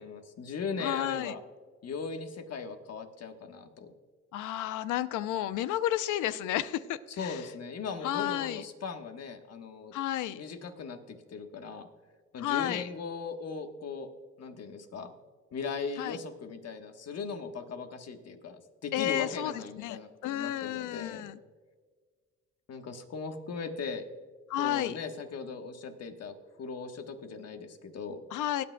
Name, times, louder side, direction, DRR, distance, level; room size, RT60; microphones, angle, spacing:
voice 1, 0.0-1.4 1.8-3.9 7.2-9.9 10.3-11.9 12.3-14.1 14.4-15.1 15.5-21.3 22.7-24.0 24.6-28.2, left 5 dB, 55° left, 6 dB, 1.3 m, -38 dB
voice 2, 0.8-1.3 4.3-7.4 8.0-8.6 9.9-10.4 12.4-12.8 16.0-16.2 18.9-20.0 20.2-21.4 24.5-25.0 28.3-28.6, left 12 dB, 85° left, 15 dB, 0.6 m, -32 dB
19.0 x 9.5 x 2.2 m, 1.5 s
cardioid pair, 90°, 30 cm